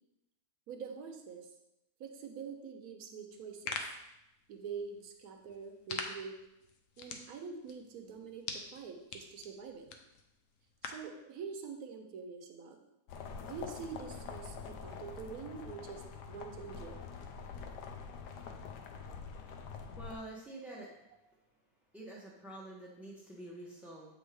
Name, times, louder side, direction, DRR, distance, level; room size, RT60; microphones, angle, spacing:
voice 1, 0.7-1.5 2.0-3.9 4.5-6.4 7.0-9.9 10.8-12.8 13.4-17.0, right 5 dB, 65° right, 4 dB, 1.2 m, -45 dB
sound 1, 3.3-11.1, left 4 dB, 60° left, 0.9 m, -46 dB
sound 2, 13.1-20.2, left 5 dB, 80° left, 1.3 m, -45 dB
voice 2, 20.0-20.9 21.9-24.1, right 1 dB, ahead, -5 dB, 0.5 m, -47 dB
7.6 x 5.4 x 3.3 m, 0.88 s
omnidirectional pair, 1.8 m